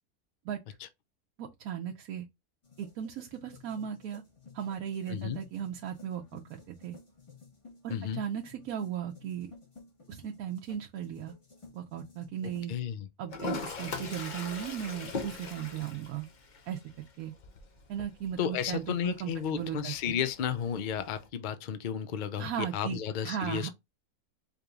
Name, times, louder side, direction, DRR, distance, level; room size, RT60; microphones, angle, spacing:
voice 1, 1.4-2.3 2.8-4.2 4.5-7.0 7.8-9.5 10.1-11.3 11.7-12.7 13.2-16.3 16.7-16.8 17.2-17.3 17.9-20.2 22.4-23.0 23.2-23.7, right 9 dB, 75° right, 1.0 m, -37 dB
sound 1, 2.6-12.8, left 4 dB, 25° left, 1.2 m, -55 dB
voice 2, 5.1-5.4 7.9-8.2 12.7-13.1 18.4-23.7, left 8 dB, 90° left, 0.4 m, -33 dB
Toilet flush, 13.3-21.3, left 4 dB, 45° left, 0.6 m, -42 dB
4.9 x 3.1 x 2.4 m
omnidirectional pair, 1.6 m